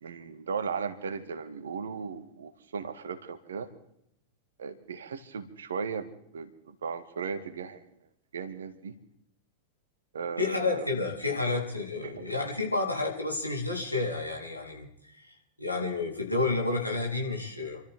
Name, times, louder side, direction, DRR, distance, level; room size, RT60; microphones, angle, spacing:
voice 1, 0.0-3.7 4.6-7.8 8.3-8.9 10.1-10.9 11.5-11.6 12.0-12.2, right 5 dB, 65° right, 9 dB, 1.9 m, -36 dB
voice 2, 10.4-14.9 15.1-17.8, left 3 dB, 85° left, -1 dB, 3.8 m, -30 dB
29.0 x 13.5 x 3.7 m, 0.75 s
figure-of-eight pair, 90°, 0 cm